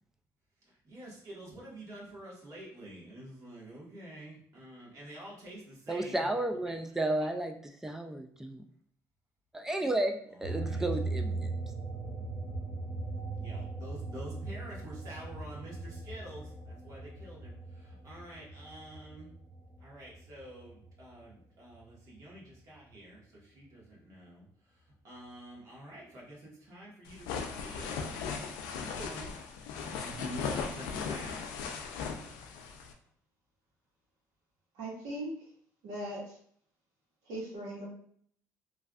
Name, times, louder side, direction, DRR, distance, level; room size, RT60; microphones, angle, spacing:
voice 1, 0.7-6.3 7.2-7.3 10.3-10.9 13.4-19.3 19.8-24.5 25.0-28.1 28.7-29.3 29.8-31.4, right 1 dB, 50° right, -4 dB, 1.4 m, -48 dB
voice 2, 5.9-7.6 7.8-8.6 9.5-11.5, right 1 dB, 5° right, 4 dB, 0.3 m, -32 dB
sound 1, 10.4-21.3 21.7-23.1, right 3 dB, 25° right, 0.8 m, -39 dB
sound 2, 27.1-32.9, left 5 dB, 85° left, 0.4 m, -38 dB
voice 3, 34.7-35.3 35.8-36.4 37.2-37.8, right 1 dB, 75° right, -5 dB, 1.3 m, -39 dB
3.1 x 2.5 x 2.4 m, 0.62 s
supercardioid pair, 75°, 7 cm